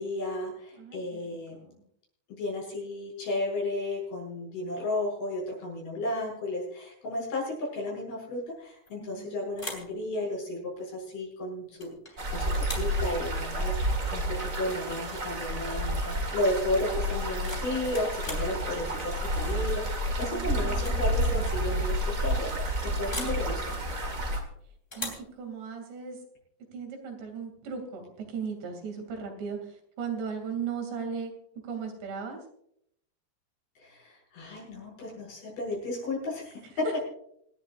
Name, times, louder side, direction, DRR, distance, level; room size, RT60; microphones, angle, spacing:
voice 1, 0.0-1.6 2.3-23.8 33.8-36.9, left 1 dB, 65° left, -2 dB, 8.9 m, -33 dB
voice 2, 0.7-1.8 9.0-9.4 20.2-21.4 25.0-26.2 26.7-31.3 31.6-32.4 36.9-37.0, right 6 dB, 85° right, 4 dB, 5.0 m, -37 dB
sound 1, 8.9-9.2 9.5-10.0 11.8-12.2 12.5-13.0 14.8-15.0 15.3-15.7 17.1-18.5 20.0-20.3 20.7-21.0 21.3-21.4 23.1-23.4 24.9-25.3, left 1 dB, 15° left, 2.6 m, -40 dB
sound 2, 12.2-24.4, right 1 dB, 35° right, 1.2 m, -30 dB
27.0 x 11.0 x 2.6 m, 0.70 s
omnidirectional pair, 4.8 m